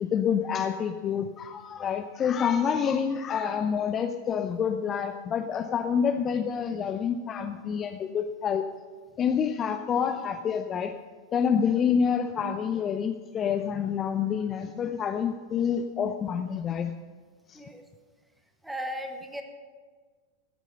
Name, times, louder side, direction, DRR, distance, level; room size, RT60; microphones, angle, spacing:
voice 1, 0.0-8.7 9.2-10.9 11.3-16.9 17.5-17.6, left 7 dB, 25° left, 7 dB, 0.6 m, -27 dB
voice 2, 18.6-19.4, equal, 5° right, 4 dB, 1.7 m, -36 dB
15.0 x 9.3 x 6.6 m, 1.5 s
figure-of-eight pair, 90°, 0 cm